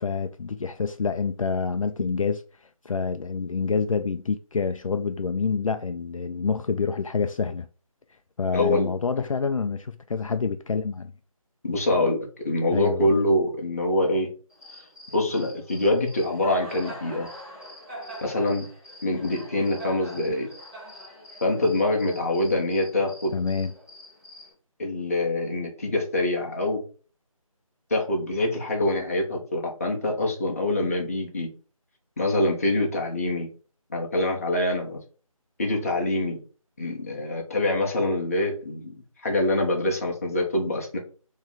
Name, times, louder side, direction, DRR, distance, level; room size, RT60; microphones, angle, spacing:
voice 1, 0.0-7.7 8.4-11.1 12.7-13.1 20.2-20.3 23.3-23.7, left 5 dB, 65° left, 0.4 m, -27 dB
voice 2, 8.5-8.9 11.6-12.2 12.4-14.3 15.1-17.3 18.2-18.7 19.0-20.5 21.4-23.3 24.8-26.8 27.9-31.5 32.2-33.5 33.9-35.0 35.6-36.4 36.8-38.9 39.2-41.0, left 1 dB, 25° left, 0.9 m, -25 dB
Cricket, 14.5-24.5, equal, 20° right, 2.4 m, -44 dB
3.9 x 3.1 x 3.8 m
figure-of-eight pair, 170°, 18 cm